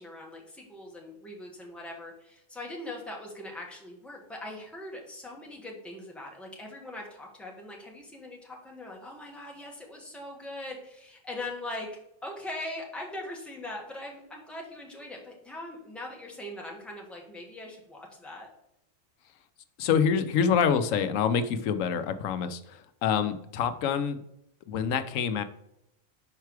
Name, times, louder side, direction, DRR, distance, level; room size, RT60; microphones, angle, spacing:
voice 1, 0.0-11.9 12.2-18.5, left 1 dB, ahead, -1 dB, 1.4 m, -41 dB
voice 2, 19.8-24.2 24.7-25.4, left 7 dB, 85° left, 11 dB, 1.0 m, -26 dB
5.8 x 4.6 x 4.7 m, 0.79 s
omnidirectional pair, 1.3 m